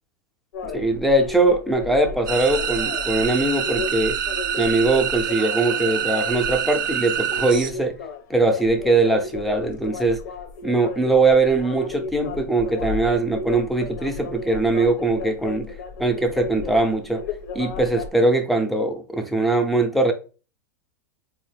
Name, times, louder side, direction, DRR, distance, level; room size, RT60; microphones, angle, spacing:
sound 1, 0.5-18.1, left 5 dB, 65° left, 0.7 m, -34 dB
voice 1, 0.6-4.2 4.6-8.0 8.3-10.2 10.6-15.7 16.0-17.2 17.5-20.1, right 2 dB, ahead, 0.5 m, -21 dB
sound 2, 2.3-7.7, right 9 dB, 90° right, 0.4 m, -26 dB
3.9 x 2.1 x 3.3 m
hypercardioid pair, 120°, 10 cm